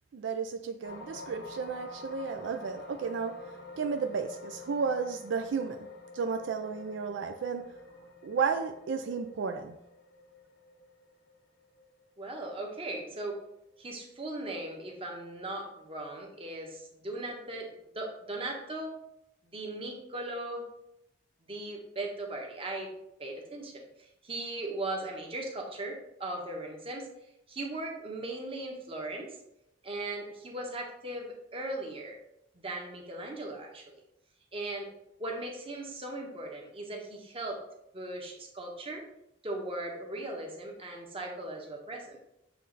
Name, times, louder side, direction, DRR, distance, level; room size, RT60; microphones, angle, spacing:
voice 1, 0.1-3.3 3.8-5.8 6.1-7.6 8.2-9.8, right 5 dB, 70° right, 6 dB, 0.4 m, -33 dB
sound 1, 0.8-13.2 13.7-13.9, left 2 dB, 60° left, 0.8 m, -49 dB
voice 2, 12.2-13.4 13.8-18.9 19.5-20.7 21.5-22.9 23.2-27.1 27.5-29.4 29.8-32.2 32.5-33.9 34.5-34.9 35.2-37.6 37.9-39.0 39.4-42.2, right 2 dB, 30° right, 0 dB, 1.1 m, -38 dB
7.7 x 3.2 x 4.0 m, 0.83 s
head